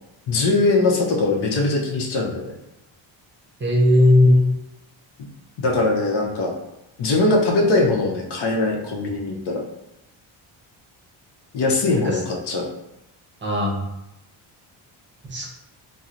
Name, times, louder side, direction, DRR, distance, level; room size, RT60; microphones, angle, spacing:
voice 1, 0.3-2.5 5.6-6.5 7.0-9.6 11.5-12.7, left 2 dB, 55° left, 0 dB, 0.7 m, -21 dB
voice 2, 3.6-4.4 12.0-12.2 13.4-13.8 15.3-15.5, left 1 dB, 25° right, -2 dB, 0.7 m, -16 dB
2.9 x 2.0 x 3.7 m, 0.91 s
cardioid pair, 110°, 47 cm